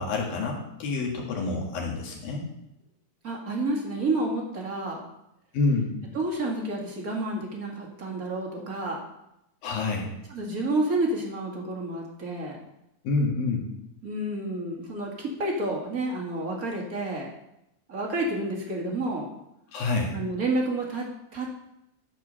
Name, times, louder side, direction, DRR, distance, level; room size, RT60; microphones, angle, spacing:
voice 1, 0.0-2.5 5.5-6.0 9.6-10.1 13.0-13.7 19.7-20.2, left 3 dB, 75° left, 0 dB, 3.5 m, -27 dB
voice 2, 3.2-5.0 6.1-9.0 10.3-12.6 14.0-17.3 17.9-19.3 20.1-21.0 21.3-21.5, right 2 dB, 35° right, -1 dB, 1.5 m, -29 dB
13.0 x 4.7 x 6.3 m, 0.84 s
omnidirectional pair, 4.2 m